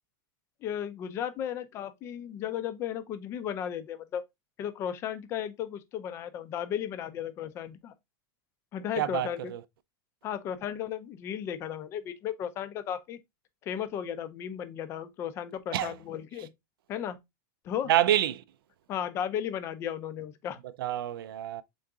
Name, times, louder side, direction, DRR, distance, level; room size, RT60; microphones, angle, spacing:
voice 1, 0.6-4.2 4.6-7.9 8.7-9.5 10.2-13.2 13.6-16.5 16.9-17.2 17.6-17.9 18.9-20.6, left 9 dB, 20° left, 0.4 m, -35 dB
voice 2, 9.0-9.6 15.7-15.9 17.9-18.4 20.8-21.6, right 12 dB, 80° right, 0.4 m, -27 dB
3.8 x 3.8 x 3.4 m
supercardioid pair, 165°, 12 cm